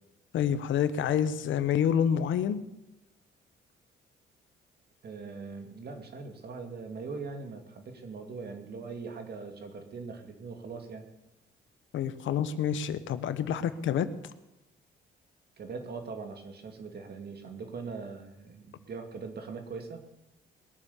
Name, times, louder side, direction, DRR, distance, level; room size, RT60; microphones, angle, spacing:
voice 1, 0.3-2.6 11.9-14.1, left 8 dB, 75° left, 13 dB, 1.1 m, -28 dB
voice 2, 5.0-11.0 15.6-20.0, right 4 dB, 55° right, 6 dB, 2.4 m, -41 dB
21.0 x 7.3 x 7.1 m, 0.93 s
cardioid pair, 90°, 20 cm